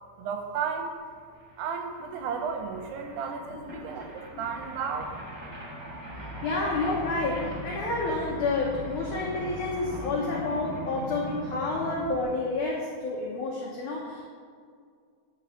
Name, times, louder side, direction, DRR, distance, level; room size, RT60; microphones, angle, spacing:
voice 1, 0.2-0.9 1.6-5.1, right 6 dB, 80° right, 5 dB, 2.5 m, -33 dB
sound 1, 1.1-1.2 1.3-12.2, right 1 dB, 30° right, 1.6 m, -40 dB
voice 2, 6.4-14.3, left 3 dB, 85° left, -3 dB, 1.7 m, -29 dB
11.0 x 4.7 x 6.8 m, 2.1 s
omnidirectional pair, 5.1 m